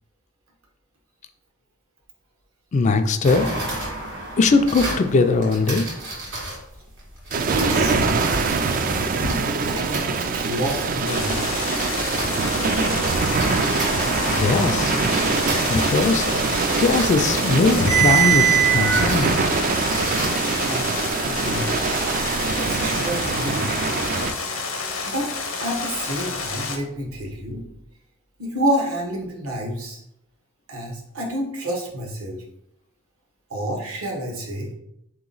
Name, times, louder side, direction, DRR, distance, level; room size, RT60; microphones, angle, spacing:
voice 1, 2.7-3.5 4.4-5.9 14.3-14.9 15.7-16.3 16.8-19.3, left 3 dB, 35° left, 7 dB, 0.3 m, -20 dB
sound 1, 3.2-6.5 7.3-12.5 12.8-20.3, right 5 dB, 60° right, 1.5 m, -26 dB
sound 2, 7.3-24.3, right 4 dB, 40° right, 0.3 m, -24 dB
voice 2, 7.5-8.2 9.2-11.5 20.5-21.0 21.2-21.7 22.5-23.8 25.1-25.3 25.6-27.6 28.4-30.0 30.7-32.4 33.5-34.7, equal, 75° right, -1 dB, 1.1 m, -29 dB
sound 3, 11.1-26.8, left 4 dB, 70° left, 0.8 m, -29 dB
3.9 x 2.9 x 3.9 m, 0.80 s
head